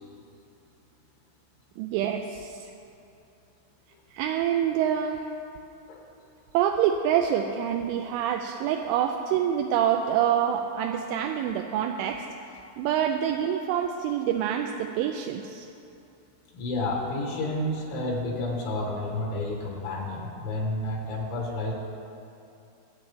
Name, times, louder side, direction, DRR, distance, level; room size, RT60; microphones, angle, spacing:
voice 1, 1.8-2.5 4.1-5.3 6.5-12.2 12.8-15.7, right 9 dB, 85° right, 3 dB, 2.9 m, -26 dB
voice 2, 16.5-21.7, left 1 dB, 75° left, -1 dB, 3.8 m, -30 dB
22.5 x 8.7 x 3.5 m, 2.7 s
omnidirectional pair, 5.7 m